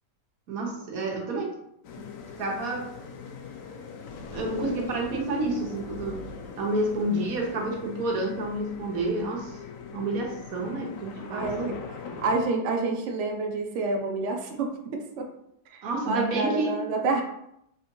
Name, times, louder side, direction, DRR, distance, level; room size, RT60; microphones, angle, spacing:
voice 1, 0.5-1.5 2.0-2.1 2.4-3.0 4.3-9.6 9.9-11.8 15.8-16.8, right 2 dB, 55° right, -1 dB, 1.2 m, -29 dB
sound 1, 1.8-12.5, left 5 dB, 75° left, 0.7 m, -41 dB
voice 2, 11.3-11.7 12.2-14.8 15.2-15.3 15.7-17.2, right 3 dB, 85° right, 2 dB, 0.6 m, -28 dB
4.2 x 3.5 x 2.6 m, 0.77 s
omnidirectional pair, 2.0 m